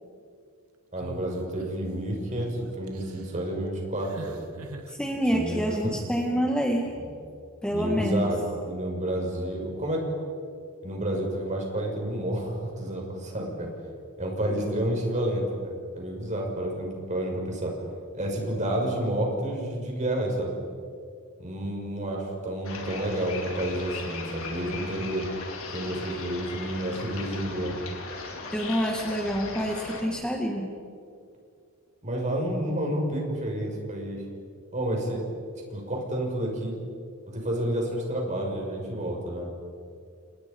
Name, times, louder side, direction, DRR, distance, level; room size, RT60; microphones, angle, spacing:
voice 1, 0.9-4.4 5.3-5.6 5.8-5.9 7.0-7.1 7.7-10.1 10.8-13.7 14.2-17.7 18.1-20.6 21.4-25.3 25.7-27.8 32.0-34.2 34.7-35.2 35.7-36.8 37.3-39.6, right 1 dB, 35° right, 0 dB, 6.5 m, -30 dB
sound 1, 1.0-1.9 2.3-2.5 2.9-3.4 4.0-4.9 5.9-6.2, right 2 dB, 90° right, 2.0 m, -43 dB
voice 2, 4.9-6.9 7.6-8.4 28.5-30.7, equal, 5° left, 0 dB, 2.1 m, -27 dB
sound 2, 22.6-30.0, left 3 dB, 70° left, 4.5 m, -38 dB
30.0 x 29.0 x 5.5 m, 2.3 s
head